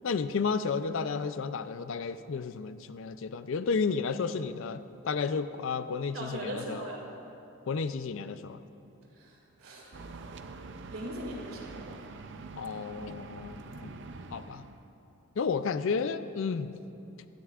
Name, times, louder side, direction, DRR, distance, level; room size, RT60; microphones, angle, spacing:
voice 1, 0.0-6.8 7.7-8.6 12.6-14.0 14.3-14.6 15.4-16.7, left 5 dB, 65° left, 12 dB, 0.4 m, -32 dB
voice 2, 6.1-7.0 9.1-10.0 10.9-12.0, right 1 dB, 70° right, -1 dB, 2.2 m, -40 dB
sound 1, 9.9-14.9, right 3 dB, 55° right, 0.5 m, -45 dB
16.5 x 13.0 x 2.4 m, 2.8 s
head